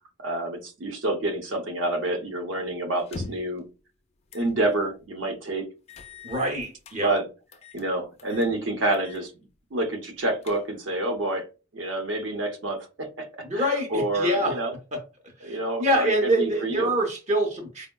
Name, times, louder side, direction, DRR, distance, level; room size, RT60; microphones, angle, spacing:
voice 1, 0.2-3.6 4.3-5.7 6.9-7.2 7.7-9.3 9.7-11.4 11.7-13.3 13.5-14.7 15.4-16.9, right 1 dB, 70° right, 0.7 m, -28 dB
sound 1, 3.0-3.6 4.3-4.5 4.9-5.0 5.9-7.0 7.5-7.9 8.2-8.5 8.9-9.3 9.6-9.7 10.2-10.9, left 3 dB, 35° left, 0.3 m, -42 dB
voice 2, 6.2-7.1 13.4-14.6 14.9-15.0 15.4-17.9, right 1 dB, 35° right, 0.6 m, -25 dB
4.3 x 2.0 x 2.2 m
head